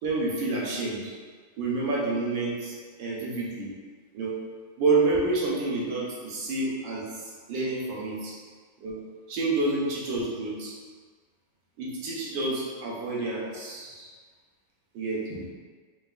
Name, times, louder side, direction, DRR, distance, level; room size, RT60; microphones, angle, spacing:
voice 1, 0.0-1.1 1.6-3.7 4.1-4.4 4.8-7.2 7.5-8.3 8.8-9.0 9.3-10.7 11.8-14.1 14.9-15.5, right 3 dB, 75° right, -5 dB, 1.3 m, -28 dB
3.8 x 2.0 x 2.3 m, 1.5 s
omnidirectional pair, 2.2 m